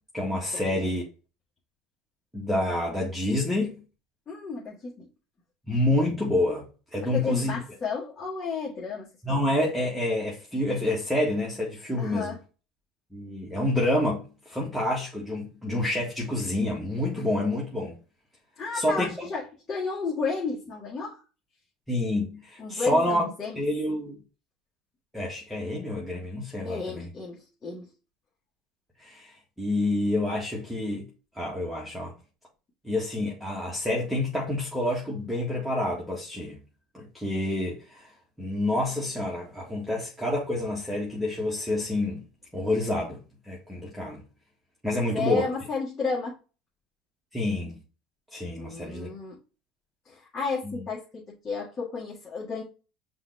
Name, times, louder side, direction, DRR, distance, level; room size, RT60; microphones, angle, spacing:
voice 1, 0.1-1.0 2.3-3.7 5.7-6.7 6.9-7.6 9.2-12.3 13.1-18.0 18.7-19.1 21.9-23.2 23.5-24.2 25.1-27.1 29.0-29.3 29.6-31.1 31.3-32.1 32.8-36.6 36.9-38.1 38.4-42.2 42.5-43.2 43.4-44.2 44.8-45.4 47.3-47.8 48.3-49.1 50.6-50.8, left 1 dB, 5° right, 1.7 m, -28 dB
voice 2, 4.3-5.1 7.0-9.1 12.0-12.4 18.6-21.2 22.6-23.6 26.6-27.9 45.1-46.4 48.6-49.4 50.1-52.6, left 4 dB, 25° left, 1.8 m, -32 dB
5.6 x 2.8 x 3.3 m
supercardioid pair, 90°, 0 cm